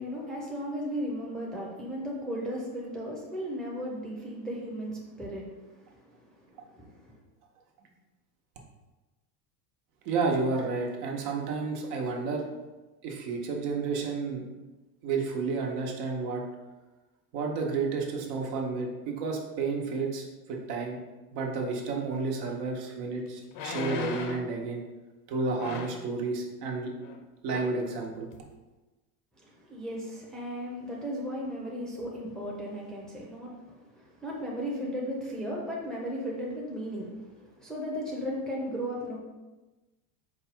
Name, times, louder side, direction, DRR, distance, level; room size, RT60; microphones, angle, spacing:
voice 1, 0.0-7.2 29.4-39.2, equal, ahead, -4 dB, 0.6 m, -36 dB
voice 2, 10.0-12.5 13.0-14.4 15.0-16.4 17.3-21.0 21.3-24.8 25.3-26.9 27.4-28.3, right 4 dB, 70° right, 0 dB, 1.1 m, -31 dB
sound 1, 22.5-22.6 23.5-24.5 25.6-26.1 27.0-27.2 27.5-27.8 28.3-28.4, left 5 dB, 60° left, 0.7 m, -37 dB
4.6 x 2.3 x 4.4 m, 1.1 s
supercardioid pair, 125°, 47 cm